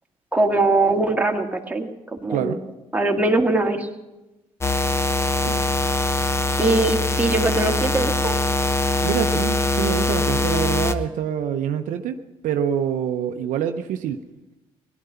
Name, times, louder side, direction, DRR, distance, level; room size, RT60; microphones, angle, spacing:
voice 1, 0.3-1.9 2.2-2.6 2.9-3.9 6.6-8.4, right 2 dB, 10° right, 1 dB, 2.0 m, -21 dB
voice 2, 2.3-2.6 5.4-5.6 9.0-12.2 12.4-14.2, right 9 dB, 70° right, 7 dB, 0.7 m, -26 dB
sound 1, 4.6-10.9, left 2 dB, 20° left, 1.0 m, -22 dB
18.0 x 11.5 x 5.7 m, 1.1 s
hypercardioid pair, 55°, 14 cm